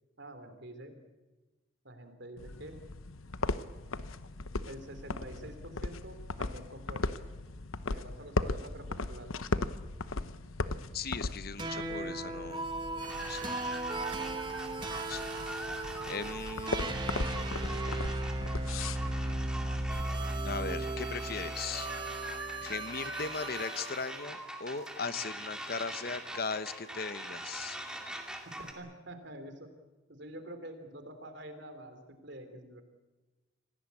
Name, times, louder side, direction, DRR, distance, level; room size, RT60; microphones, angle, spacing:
voice 1, 0.2-1.0 1.8-2.8 4.7-7.2 7.9-9.6 17.1-17.9 28.5-29.7 30.1-32.8, right 1 dB, 55° right, 8 dB, 3.5 m, -47 dB
sound 1, 2.4-20.0, left 3 dB, 80° left, 1.0 m, -38 dB
voice 2, 10.9-12.6 13.0-13.5 15.1-15.3 16.1-17.0 20.4-21.9 22.6-27.8, left 5 dB, 45° left, 13 dB, 1.0 m, -38 dB
sound 2, 11.6-24.1, right 2 dB, 20° right, 1.7 m, -36 dB
sound 3, 13.0-28.7, right 1 dB, 5° right, 2.4 m, -43 dB
26.5 x 18.0 x 8.5 m, 1.2 s
head